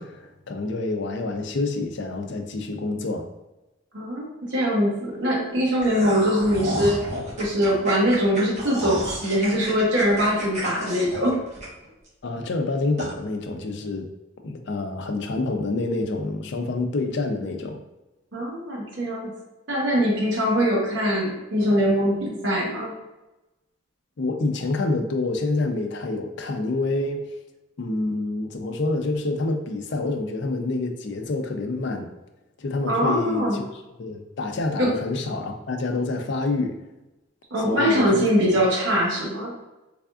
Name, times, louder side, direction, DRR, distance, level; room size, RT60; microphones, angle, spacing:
voice 1, 0.0-3.3 12.2-14.1 14.4-17.8 24.2-27.3 27.8-32.1 32.6-33.7 34.0-36.8 37.6-38.2, left 2 dB, 65° left, 5 dB, 0.5 m, -27 dB
voice 2, 3.9-7.0 7.4-11.4 18.3-19.3 19.7-22.9 32.9-33.6 34.8-34.9 37.5-39.5, equal, 65° right, -4 dB, 0.9 m, -22 dB
sound 1, 5.8-12.1 12.4-12.5 13.0-13.1, right 1 dB, 40° right, 1.2 m, -32 dB
3.6 x 3.4 x 2.4 m, 1.0 s
head